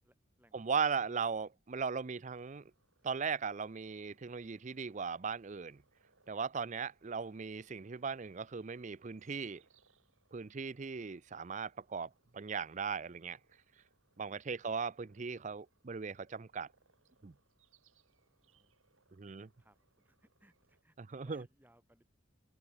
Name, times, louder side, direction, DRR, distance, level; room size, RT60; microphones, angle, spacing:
voice 1, 0.0-0.7 1.0-1.3 4.4-4.5 18.2-18.7 19.2-22.0, right 1 dB, 10° right, 6.1 m, -69 dB
voice 2, 0.5-2.6 3.0-5.8 6.3-9.6 10.3-13.4 14.2-16.7 17.2-17.3 19.2-19.5 21.0-21.4, right 5 dB, 35° right, 0.5 m, -38 dB
sound 1, 2.1-20.8, right 4 dB, 90° right, 6.6 m, -74 dB
open air
head